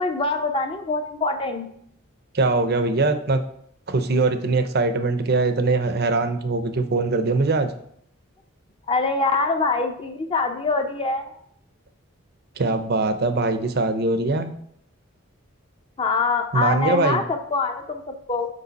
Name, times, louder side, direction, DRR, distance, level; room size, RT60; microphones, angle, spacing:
voice 1, 0.0-1.7 8.9-11.3 16.0-18.5, left 3 dB, 25° left, 5 dB, 0.6 m, -24 dB
voice 2, 2.3-3.4 3.9-7.7 12.6-14.5 16.5-17.2, right 3 dB, 50° right, 9 dB, 0.6 m, -22 dB
6.8 x 5.1 x 4.1 m, 0.67 s
head